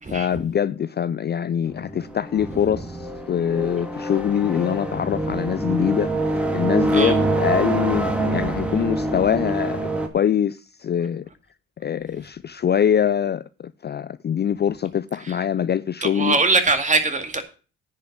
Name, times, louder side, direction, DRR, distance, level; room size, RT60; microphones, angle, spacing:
voice 1, 0.1-9.9 10.1-11.3 11.8-16.4, left 9 dB, 35° left, 0.4 m, -24 dB
sound 1, 1.7-10.1, right 2 dB, 5° right, 1.9 m, -25 dB
voice 2, 16.0-17.4, right 3 dB, 25° right, 2.2 m, -21 dB
10.0 x 5.5 x 7.9 m
cardioid pair, 90°, 30 cm